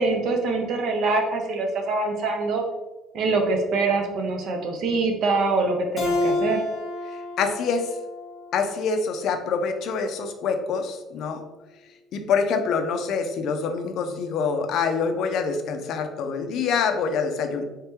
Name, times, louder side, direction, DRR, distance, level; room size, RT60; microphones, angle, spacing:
voice 1, 0.0-2.6 3.1-6.6, right 3 dB, 50° right, 3 dB, 0.6 m, -24 dB
Keyboard (musical), 6.0-9.2, left 2 dB, 20° left, 0.8 m, -29 dB
voice 2, 7.4-7.9 8.5-11.4 12.1-17.6, left 5 dB, 55° left, 6 dB, 0.4 m, -25 dB
3.4 x 3.2 x 2.9 m, 1.1 s
cardioid pair, 165°, 0 cm